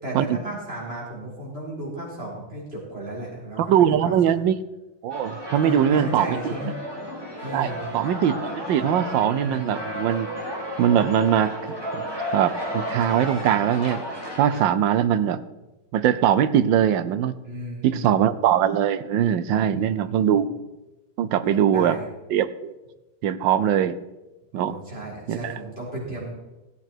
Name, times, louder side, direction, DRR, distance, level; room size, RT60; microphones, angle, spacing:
voice 1, 0.0-4.4 5.6-6.7 7.4-7.9 17.4-18.2 19.5-20.2 21.4-22.0 24.5-26.3, right 1 dB, 30° right, -4 dB, 4.4 m, -34 dB
voice 2, 3.6-4.5 5.0-6.4 7.5-8.4 8.7-10.3 10.8-12.0 12.3-14.0 14.4-15.4 15.9-17.3 17.8-20.5 21.2-22.0 22.3-22.8 23.2-24.0 24.5-24.8 25.3-25.5, right 9 dB, 75° right, 14 dB, 1.3 m, -21 dB
sound 1, 5.1-14.6, equal, 10° right, 2.4 m, -33 dB
16.0 x 8.5 x 4.4 m, 1.0 s
omnidirectional pair, 2.1 m